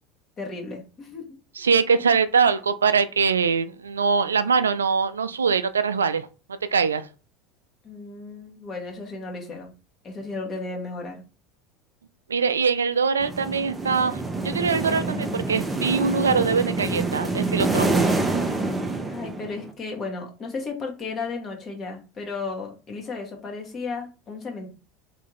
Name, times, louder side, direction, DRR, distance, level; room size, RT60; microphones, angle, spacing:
voice 1, 0.4-1.2 7.8-9.7 10.0-11.2 19.1-24.7, left 3 dB, 35° left, 0 dB, 1.5 m, -34 dB
voice 2, 1.6-6.3 6.7-7.1 12.3-18.1, right 5 dB, 85° right, 12 dB, 0.3 m, -23 dB
sound 1, 13.2-19.7, right 3 dB, 10° right, 0.8 m, -26 dB
3.6 x 3.2 x 3.1 m, 0.33 s
figure-of-eight pair, 75°, 0 cm